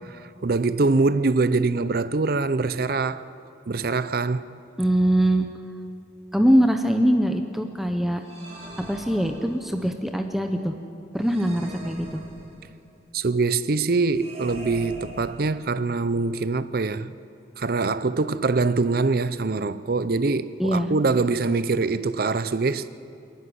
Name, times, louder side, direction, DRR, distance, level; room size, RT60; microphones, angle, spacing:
voice 1, 0.0-3.2 3.7-4.5 13.1-17.1 17.6-22.9, right 3 dB, 55° right, 0.6 m, -24 dB
voice 2, 4.8-5.5 6.3-8.2 8.9-10.7 11.1-12.2 20.6-20.9, equal, ahead, 0.9 m, -22 dB
sound 1, 8.2-9.9 11.2-12.8 14.1-15.9, equal, 35° right, 5.2 m, -42 dB
27.5 x 11.0 x 9.5 m
head